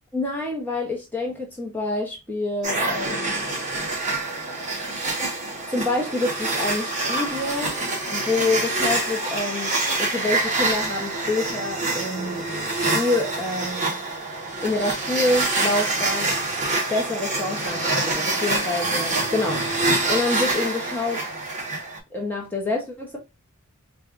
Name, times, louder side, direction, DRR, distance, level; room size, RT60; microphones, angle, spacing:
voice 1, 0.1-3.4 5.7-7.8 8.1-9.7 10.0-14.0 14.6-16.4 16.9-19.6 20.1-21.3 22.1-23.2, left 2 dB, 10° left, 0.8 m, -27 dB
sound 1, 2.6-22.0, right 2 dB, 35° right, 1.2 m, -26 dB
4.5 x 2.5 x 2.4 m
head